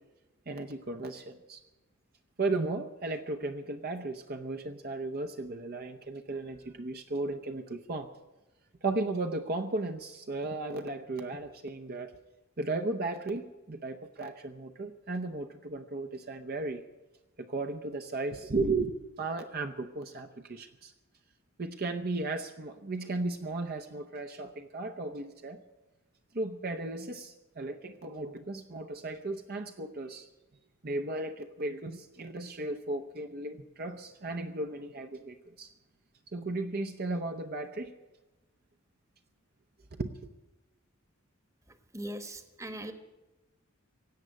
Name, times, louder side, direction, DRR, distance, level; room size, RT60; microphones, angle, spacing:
voice 1, 0.5-1.6 2.4-8.1 8.8-12.1 12.6-16.8 17.4-20.9 21.6-25.6 26.3-30.3 30.8-35.7 36.3-37.9 40.0-40.2, right 2 dB, 45° right, 6 dB, 0.8 m, -35 dB
voice 2, 41.9-42.9, right 1 dB, 15° right, 9 dB, 1.2 m, -39 dB
17.0 x 8.0 x 9.9 m, 1.1 s
head